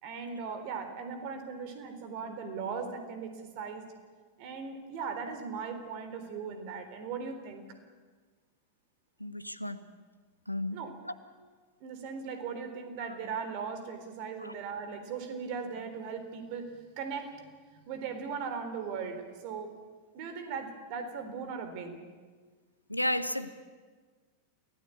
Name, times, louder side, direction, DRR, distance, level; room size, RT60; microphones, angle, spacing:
voice 1, 0.0-3.9 4.4-7.6 10.7-11.0 11.8-19.8 20.1-22.1, right 5 dB, 45° right, 8 dB, 3.9 m, -38 dB
voice 2, 9.2-9.8 10.5-10.8 11.0-11.1 14.4-14.5 22.9-23.5, left 1 dB, 90° left, 13 dB, 1.1 m, -33 dB
28.5 x 17.5 x 8.6 m, 1.5 s
figure-of-eight pair, 90°, 0 cm